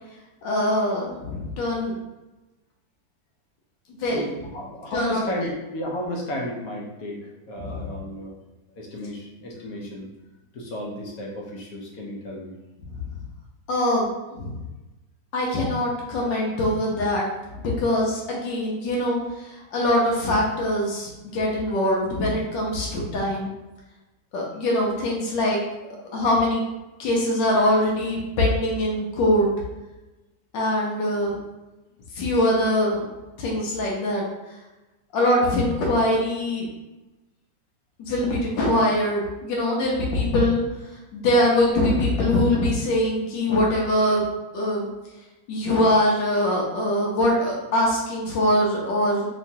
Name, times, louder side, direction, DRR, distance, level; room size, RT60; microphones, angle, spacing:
voice 1, 0.4-2.0 4.0-4.3 4.9-5.2 7.6-7.8 13.7-14.5 15.3-17.2 17.6-23.5 24.3-25.6 26.1-26.6 27.0-29.5 30.5-31.4 32.1-33.1 33.4-34.2 35.1-36.7 38.0-40.6 41.1-44.2 44.5-44.9 45.5-49.2, left 1 dB, 90° left, -3 dB, 1.5 m, -23 dB
voice 2, 4.0-8.4 8.8-10.1 10.5-12.5, left 1 dB, 65° left, -2 dB, 1.0 m, -33 dB
3.3 x 3.0 x 2.7 m, 1.1 s
omnidirectional pair, 1.9 m